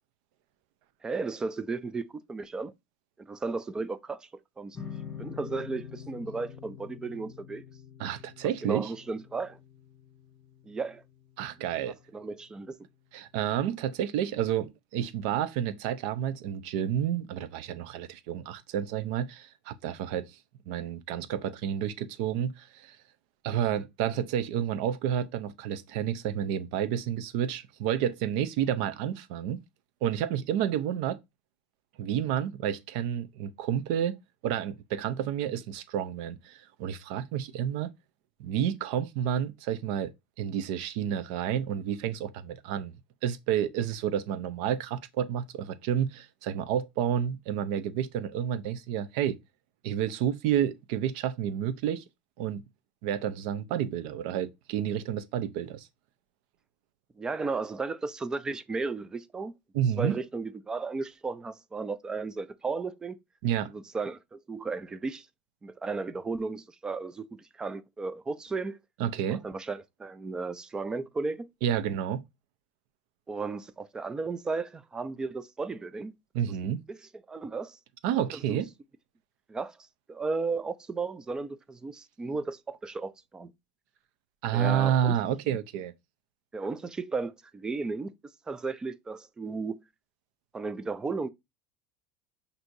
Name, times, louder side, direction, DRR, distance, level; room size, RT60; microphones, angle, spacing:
voice 1, 1.0-2.7 3.2-4.3 4.6-4.8 5.2-7.6 8.6-9.6 10.6-11.0 11.9-12.8 57.2-59.5 60.0-63.2 63.7-65.3 65.6-68.8 69.3-71.5 73.3-76.1 76.6-77.0 77.3-77.8 78.5-78.6 79.5-79.8 80.1-83.5 84.5-85.2 86.5-88.1 88.5-89.8 90.5-91.3, right 4 dB, 15° right, 0.3 m, -34 dB
sound 1, 4.7-12.0, left 8 dB, 15° left, 1.8 m, -46 dB
voice 2, 8.0-8.9 11.4-12.0 13.1-20.4 20.7-23.0 23.4-29.6 30.0-31.2 32.0-34.2 34.4-37.9 38.4-42.9 43.2-49.4 49.8-52.0 52.4-52.6 53.0-55.9 59.7-60.2 63.4-63.7 69.0-69.5 71.6-72.2 76.3-76.8 78.0-78.7 84.4-85.9, right 9 dB, 65° right, 0.5 m, -30 dB
6.0 x 2.7 x 2.6 m
supercardioid pair, 150°, 6 cm